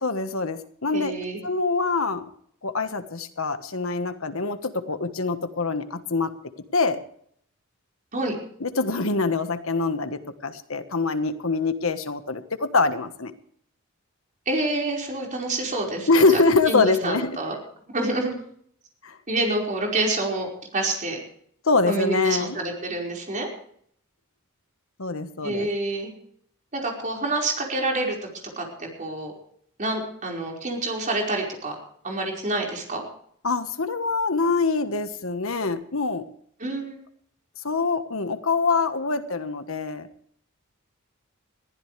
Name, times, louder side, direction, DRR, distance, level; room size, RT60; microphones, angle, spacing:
voice 1, 0.0-1.1 1.4-2.3 2.6-7.0 8.6-13.3 16.1-17.4 19.0-19.2 21.6-22.6 25.0-25.7 33.4-36.3 37.6-40.1, left 3 dB, 70° left, 10 dB, 1.4 m, -24 dB
voice 2, 0.9-1.4 8.1-8.3 14.4-16.3 16.7-17.5 17.9-18.3 19.3-21.2 21.9-23.5 25.4-26.1 26.7-28.2 28.6-29.3 29.8-31.8 32.0-33.0 36.6-37.0, right 2 dB, 35° right, 0 dB, 5.0 m, -27 dB
21.5 x 15.0 x 3.3 m, 0.64 s
head